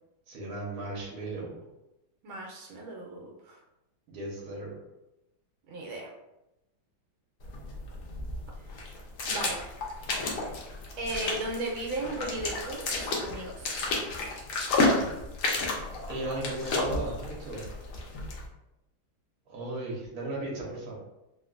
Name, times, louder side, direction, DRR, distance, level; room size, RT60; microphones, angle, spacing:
voice 1, 0.3-1.6 4.1-4.7 16.1-17.6 19.5-20.9, right 2 dB, 55° right, -4 dB, 1.2 m, -36 dB
voice 2, 2.2-3.6 5.7-6.1 8.6-8.8 9.3-9.6 11.0-13.8, right 2 dB, 80° right, -1 dB, 1.4 m, -36 dB
sound 1, 7.4-18.5, left 2 dB, 90° left, 0.7 m, -32 dB
3.4 x 2.4 x 2.4 m, 0.93 s
omnidirectional pair, 2.2 m